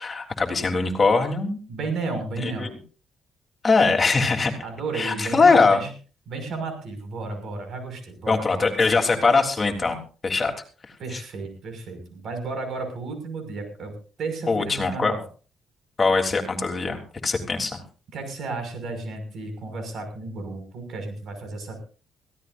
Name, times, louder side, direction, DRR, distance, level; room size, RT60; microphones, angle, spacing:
voice 1, 0.0-1.6 2.4-2.7 3.6-4.5 4.9-5.8 8.3-10.0 10.2-10.5 11.1-11.2 14.5-15.1 16.0-17.8, left 4 dB, 30° left, 2 dB, 3.5 m, -21 dB
voice 2, 1.7-2.7 4.6-5.9 6.3-8.7 11.0-15.2 18.1-21.8, right 3 dB, 65° right, 7 dB, 6.0 m, -33 dB
22.0 x 16.0 x 2.7 m, 0.37 s
cardioid pair, 90°, 0 cm